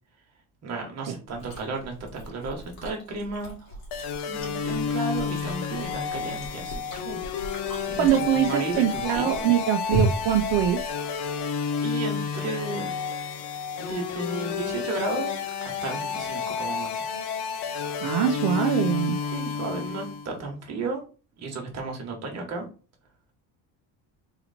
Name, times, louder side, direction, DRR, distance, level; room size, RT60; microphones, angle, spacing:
voice 1, 0.6-3.7 4.3-6.8 7.0-8.1 8.3-9.5 11.8-12.9 13.8-17.0 19.3-21.0 21.4-22.7, right 3 dB, 40° right, 1 dB, 1.4 m, -34 dB
Chewing mastication, 1.3-11.4, right 1 dB, 60° left, 2.1 m, -35 dB
sound 1, 3.9-20.3, left 6 dB, 80° left, 0.8 m, -31 dB
voice 2, 8.0-10.8 18.0-19.2, right 10 dB, 75° right, 6 dB, 0.6 m, -23 dB
3.9 x 3.0 x 4.1 m, 0.36 s
cardioid pair, 175°, 41 cm